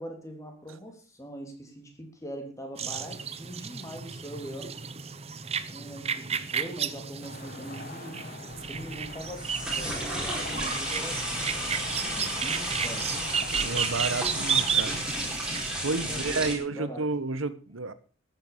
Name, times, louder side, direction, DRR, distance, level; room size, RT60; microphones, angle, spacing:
voice 1, 0.0-4.7 5.7-8.2 8.6-13.1 15.8-17.1, equal, 15° left, 3.4 m, -42 dB
sound 1, 2.8-15.7, right 6 dB, 30° right, 0.9 m, -33 dB
sound 2, 7.2-14.8, left 3 dB, 45° left, 1.9 m, -44 dB
sound 3, 8.6-16.5, right 1 dB, 5° right, 4.3 m, -33 dB
voice 2, 13.6-15.0 15.8-17.9, right 3 dB, 90° right, 1.3 m, -31 dB
13.0 x 9.1 x 6.9 m
head